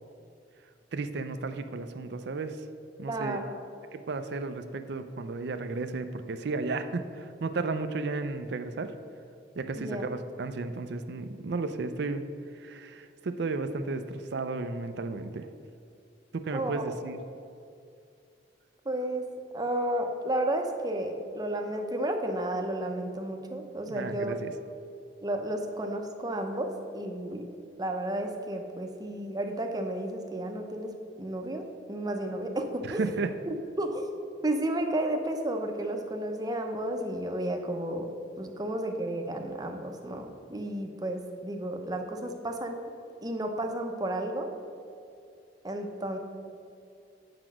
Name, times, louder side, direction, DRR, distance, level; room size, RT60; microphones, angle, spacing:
voice 1, 0.9-2.6 3.0-3.4 3.9-8.9 9.6-12.2 12.5-15.5 16.3-17.2 23.9-24.5 32.8-33.3, right 3 dB, 65° right, 9 dB, 0.5 m, -33 dB
voice 2, 3.1-3.6 9.8-10.0 16.5-16.8 18.9-19.2 19.5-24.3 25.2-27.5 27.8-33.0 33.5-34.1 34.4-38.1 38.4-42.9 43.2-44.5 45.6-46.2, right 1 dB, 20° right, 4 dB, 0.7 m, -32 dB
7.8 x 5.0 x 6.1 m, 2.5 s
head